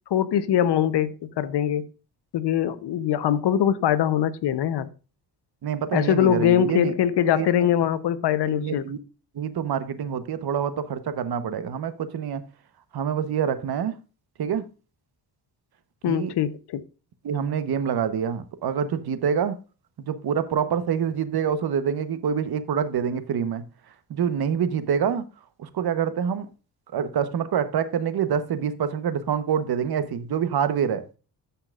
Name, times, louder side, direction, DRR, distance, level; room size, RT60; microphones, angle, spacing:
voice 1, 0.1-1.9 2.3-4.9 5.9-8.8 16.0-16.8, left 10 dB, 75° left, 0.9 m, -22 dB
voice 2, 5.6-6.9 7.3-7.7 8.4-9.0 9.3-12.4 12.9-13.9 14.4-14.6 16.0-16.3 17.2-19.6 20.0-23.6 24.1-25.2 25.6-26.5 26.9-31.0, right 7 dB, 60° right, 1.1 m, -26 dB
13.5 x 5.8 x 2.5 m
cardioid pair, 85°, 42 cm